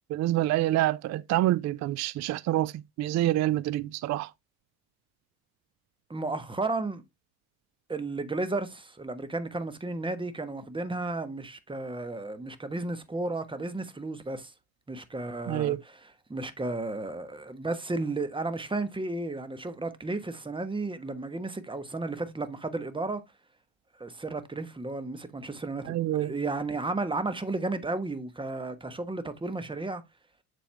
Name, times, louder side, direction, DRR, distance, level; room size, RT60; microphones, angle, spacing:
voice 1, 0.1-2.7 3.0-4.3 15.5-15.8 25.9-26.3, right 14 dB, 40° right, 0.4 m, -27 dB
voice 2, 6.1-7.0 7.9-14.5 14.9-23.2 24.0-30.0, right 2 dB, 10° right, 1.2 m, -33 dB
7.0 x 4.6 x 3.3 m
hypercardioid pair, 65°, 45 cm